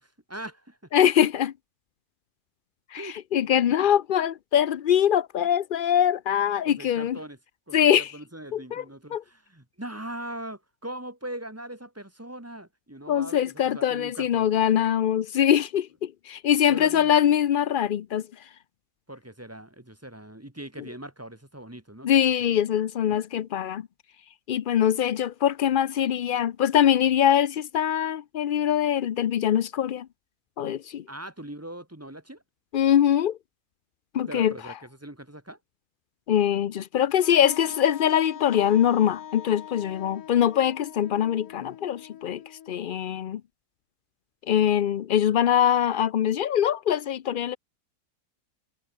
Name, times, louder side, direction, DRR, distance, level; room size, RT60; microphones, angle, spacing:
voice 1, 0.0-0.8 2.9-3.2 3.7-3.8 6.6-7.4 7.7-14.5 16.7-17.1 19.1-22.1 31.1-32.4 34.3-35.6, right 1 dB, 10° right, 2.0 m, -40 dB
voice 2, 0.9-1.5 2.9-7.2 7.7-8.1 8.5-8.8 9.1-9.2 13.1-18.2 22.0-23.9 24.5-30.1 30.6-31.0 32.7-33.4 34.1-34.5 36.3-42.4 42.7-43.4 44.5-47.6, left 10 dB, 90° left, 0.4 m, -23 dB
Wind instrument woodwind instrument, 37.2-43.0, left 10 dB, 70° left, 1.3 m, -43 dB
omnidirectional pair, 1.6 m